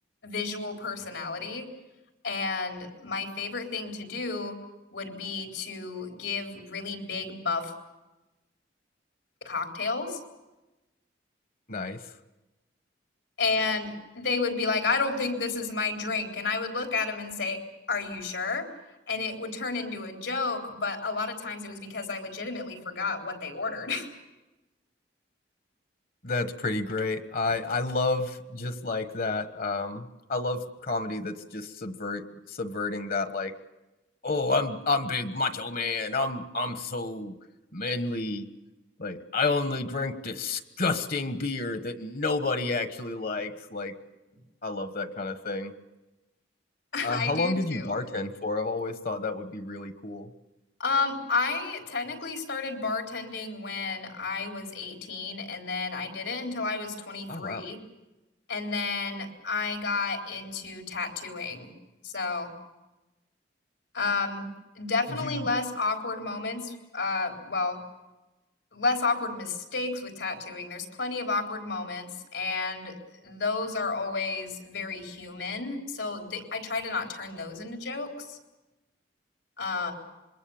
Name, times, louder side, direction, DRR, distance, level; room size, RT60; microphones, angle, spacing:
voice 1, 0.2-1.7 2.2-4.6 4.9-7.7 9.4-10.2 13.4-17.6 17.9-18.7 19.1-24.1 46.9-48.0 50.8-57.8 58.5-61.7 62.0-62.5 63.9-64.5 64.8-67.8 68.7-73.0 73.2-78.4 79.6-79.9, left 4 dB, 85° left, 3 dB, 3.9 m, -31 dB
voice 2, 11.7-12.1 26.2-33.5 34.2-37.4 37.7-38.5 39.0-43.9 44.6-45.7 47.0-50.3 57.3-57.7 65.1-65.5, left 3 dB, 50° left, 10 dB, 1.3 m, -30 dB
26.5 x 22.0 x 7.2 m, 1.0 s
head